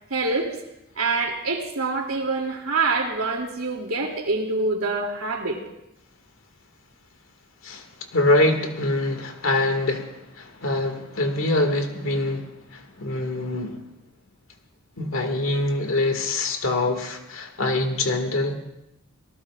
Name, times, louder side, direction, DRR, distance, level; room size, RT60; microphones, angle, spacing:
voice 1, 0.1-0.5 1.0-5.6, right 3 dB, 85° right, 0 dB, 2.9 m, -25 dB
voice 2, 8.1-13.8 15.0-18.5, left 2 dB, 70° left, 4 dB, 2.2 m, -24 dB
26.5 x 18.0 x 2.5 m, 0.87 s
head